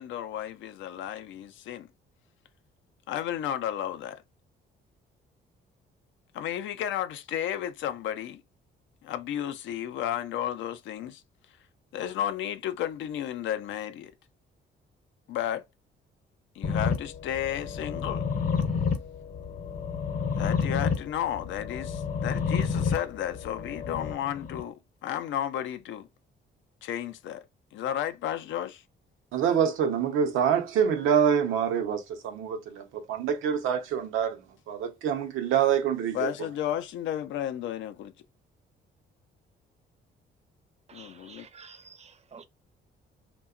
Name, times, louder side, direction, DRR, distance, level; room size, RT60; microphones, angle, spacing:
voice 1, 0.0-1.9 3.1-4.2 6.3-8.4 9.0-11.2 11.9-14.1 15.3-15.6 16.6-18.3 20.4-26.1 26.8-27.5 27.7-28.8 36.1-38.1 40.9-41.5, left 10 dB, 75° left, 0.4 m, -33 dB
sound 1, 16.6-24.6, left 5 dB, 45° left, 0.8 m, -30 dB
voice 2, 29.3-34.4 34.7-36.3, right 8 dB, 85° right, 0.7 m, -26 dB
voice 3, 40.9-42.4, right 5 dB, 35° right, 0.5 m, -50 dB
2.8 x 2.2 x 2.3 m
cardioid pair, 90°, 20 cm